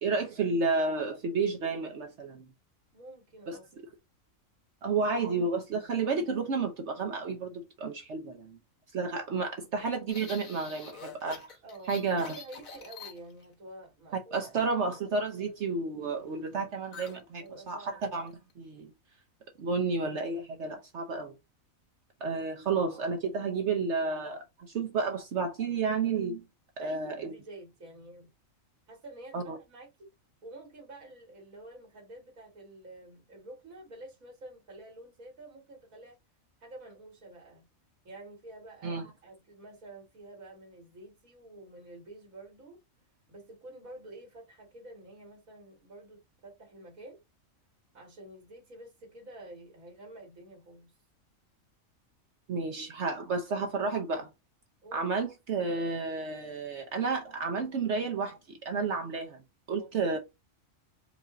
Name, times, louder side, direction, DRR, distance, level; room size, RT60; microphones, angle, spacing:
voice 1, 0.0-2.4 3.5-3.6 4.8-8.6 8.9-11.5 11.9-12.4 14.3-18.9 19.6-21.3 22.2-26.4 26.8-27.3 29.3-29.6 38.8-39.0 52.5-54.3 54.9-59.4 59.7-60.2, right 4 dB, 60° right, 1.0 m, -31 dB
voice 2, 2.9-3.7 11.6-15.0 17.4-18.0 26.8-28.3 28.9-30.1 30.4-36.2 36.6-37.7 38.0-42.8 43.3-47.2 47.9-50.9 54.8-55.1 59.8-60.2, right 2 dB, 85° right, 2.3 m, -49 dB
sound 1, 10.1-13.5 16.9-17.2 17.5-17.7 18.1-18.5, left 5 dB, 80° left, 1.8 m, -46 dB
4.9 x 2.6 x 3.7 m
omnidirectional pair, 1.4 m